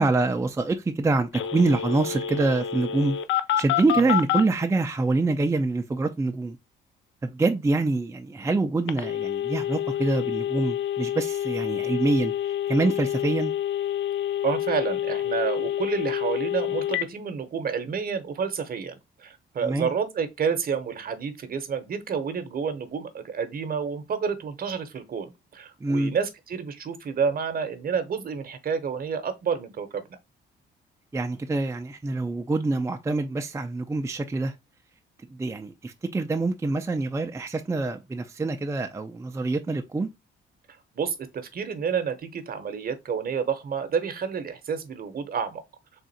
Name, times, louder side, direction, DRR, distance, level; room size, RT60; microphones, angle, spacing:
voice 1, 0.0-3.2 3.6-6.6 7.2-12.3 12.7-13.5 19.6-19.9 25.8-26.1 31.1-34.5 35.3-40.1, right 3 dB, 15° right, 0.4 m, -25 dB
Telephone, 1.3-4.4 8.9-17.1, left 11 dB, 75° left, 0.5 m, -28 dB
voice 2, 14.4-30.2 40.9-45.6, right 6 dB, 50° right, 0.8 m, -29 dB
3.7 x 2.4 x 4.1 m
cardioid pair, 90°, 20 cm